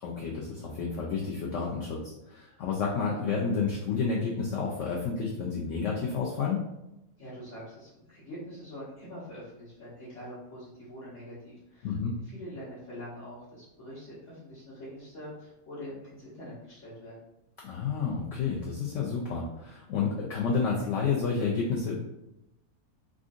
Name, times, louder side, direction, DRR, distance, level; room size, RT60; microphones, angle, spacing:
voice 1, 0.0-6.6 11.8-12.1 17.6-21.9, left 5 dB, 70° left, -2 dB, 0.8 m, -30 dB
voice 2, 7.2-12.0 12.3-17.2, equal, 50° left, -11 dB, 1.4 m, -44 dB
3.7 x 2.5 x 2.4 m, 0.88 s
omnidirectional pair, 1.6 m